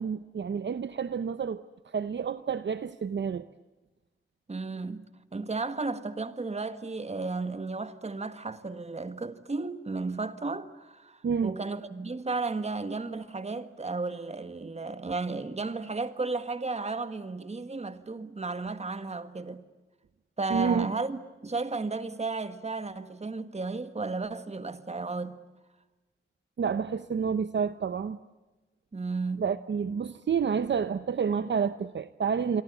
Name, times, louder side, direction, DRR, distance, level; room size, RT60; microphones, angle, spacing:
voice 1, 0.0-3.4 11.2-11.5 20.5-20.9 26.6-28.2 29.4-32.6, right 6 dB, 60° right, 0.8 m, -29 dB
voice 2, 4.5-5.1 5.3-19.6 20.4-25.4 28.9-29.4, right 3 dB, 30° right, 1.7 m, -34 dB
27.5 x 23.5 x 8.2 m
wide cardioid pair, 110°, 21 cm